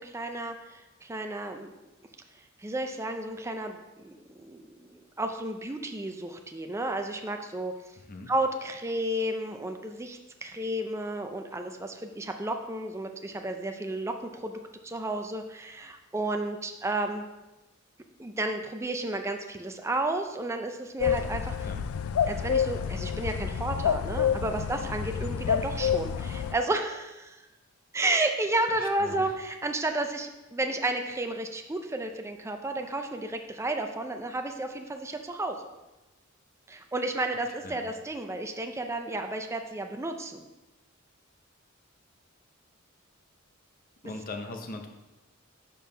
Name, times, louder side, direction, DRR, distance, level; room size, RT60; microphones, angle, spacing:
voice 1, 0.0-1.7 2.6-7.7 8.3-17.2 18.2-21.6 22.3-27.4 27.9-35.7 36.7-40.5 44.0-44.1, right 2 dB, 15° right, 5 dB, 0.5 m, -32 dB
sound 1, 21.0-26.5, left 8 dB, 80° left, 0.3 m, -28 dB
voice 2, 28.7-29.3 37.6-37.9 44.0-44.9, left 2 dB, 45° left, 4 dB, 0.8 m, -40 dB
5.4 x 4.7 x 5.6 m, 1.0 s
head